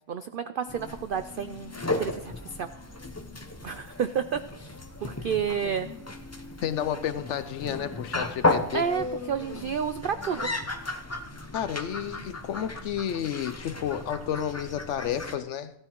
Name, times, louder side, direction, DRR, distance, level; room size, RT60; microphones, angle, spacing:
voice 1, 0.1-2.7 3.6-4.7 5.0-5.9 8.7-10.5, right 7 dB, 75° right, 0.5 m, -30 dB
sound 1, 0.7-15.3, left 2 dB, 20° left, 0.4 m, -34 dB
voice 2, 6.6-8.9 11.5-15.7, left 9 dB, 65° left, 0.8 m, -31 dB
15.5 x 13.0 x 3.0 m
omnidirectional pair, 1.5 m